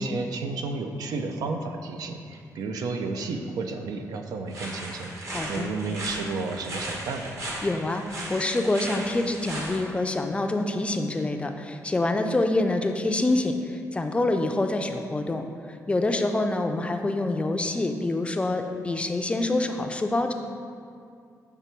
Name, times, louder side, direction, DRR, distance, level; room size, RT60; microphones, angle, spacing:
voice 1, 0.0-7.4, right 3 dB, 85° right, 5 dB, 0.5 m, -32 dB
sound 1, 4.5-9.8, right 1 dB, 50° right, 1.1 m, -36 dB
voice 2, 5.3-5.7 7.6-15.5 15.9-20.3, left 2 dB, 20° left, 5 dB, 0.4 m, -26 dB
7.0 x 3.4 x 4.4 m, 2.3 s
cardioid pair, 115°, 6 cm